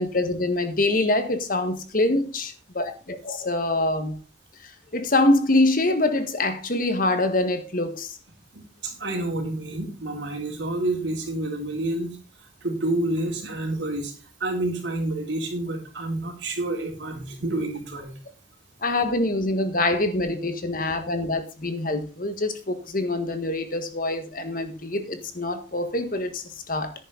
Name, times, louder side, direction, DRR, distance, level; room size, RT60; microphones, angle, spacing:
voice 1, 0.0-4.2 4.6-8.2 18.8-26.9, left 2 dB, 50° left, 8 dB, 1.7 m, -25 dB
voice 2, 8.5-12.1 12.6-14.1 14.4-18.1, right 2 dB, 85° right, 1 dB, 3.6 m, -28 dB
10.5 x 9.7 x 4.0 m, 0.33 s
head